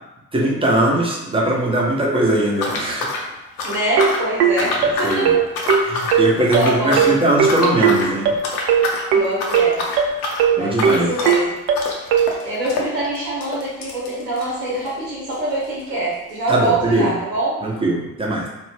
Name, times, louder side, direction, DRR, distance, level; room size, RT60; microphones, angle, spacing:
voice 1, 0.3-3.2 4.6-5.4 5.7-8.3 10.2-11.1 16.5-17.2 17.6-18.5, right 1 dB, 10° right, -3 dB, 0.6 m, -20 dB
sound 1, 2.6-4.3 4.6-5.2 5.5-6.2 6.5-7.1 7.5-8.1 8.4-9.1 9.3-15.0 15.3-15.4 15.6-15.7 16.4-16.5, left 2 dB, 70° left, 0.6 m, -26 dB
voice 2, 3.6-5.4 6.5-7.2 9.1-9.8 10.5-11.5 12.0-17.6, right 2 dB, 80° right, -6 dB, 0.9 m, -24 dB
sound 2, 4.0-12.3, right 7 dB, 55° right, 0.5 m, -17 dB
2.5 x 2.0 x 3.1 m, 0.96 s
figure-of-eight pair, 45°, 48 cm